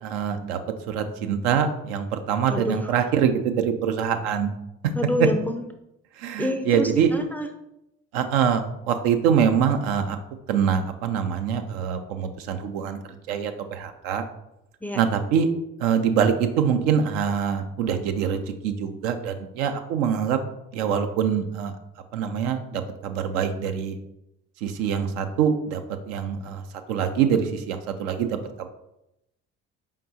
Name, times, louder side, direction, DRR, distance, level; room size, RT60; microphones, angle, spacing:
voice 1, 0.0-0.6 0.9-4.5 6.2-7.1 8.1-10.2 10.5-13.0 13.3-14.2 14.9-15.5 15.8-20.4 20.7-21.7 22.1-24.0 24.6-25.8 26.1-26.6 26.9-28.3 28.6-28.7, right 7 dB, 70° right, 7 dB, 0.6 m, -24 dB
voice 2, 4.9-5.6 6.4-7.5 14.8-15.0, left 1 dB, 5° left, 6 dB, 0.4 m, -27 dB
4.7 x 3.6 x 2.7 m, 0.85 s
hypercardioid pair, 55°, 37 cm